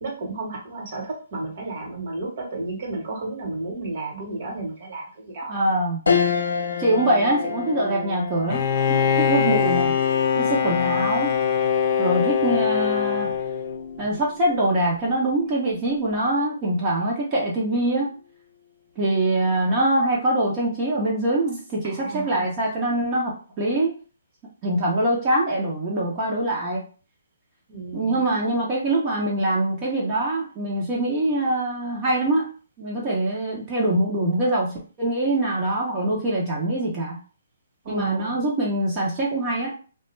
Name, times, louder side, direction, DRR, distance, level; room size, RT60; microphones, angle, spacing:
voice 1, 0.0-5.6 10.6-11.0 21.8-22.4 27.7-28.2 37.8-38.4, right 3 dB, 55° right, -1 dB, 1.2 m, -33 dB
voice 2, 5.5-6.0 6.8-8.6 8.9-9.9 10.4-11.3 12.0-13.3 14.0-18.1 19.0-24.0 24.6-26.8 27.9-32.5 32.8-37.2 37.9-39.7, right 1 dB, 30° right, -4 dB, 0.7 m, -23 dB
sound 1, 6.1-15.7 16.1-16.2 17.6-18.0, left 6 dB, 90° left, 0.6 m, -31 dB
Bowed string instrument, 8.5-14.1, left 7 dB, 40° left, 0.4 m, -22 dB
2.4 x 2.2 x 3.1 m, 0.37 s
hypercardioid pair, 145°, 0 cm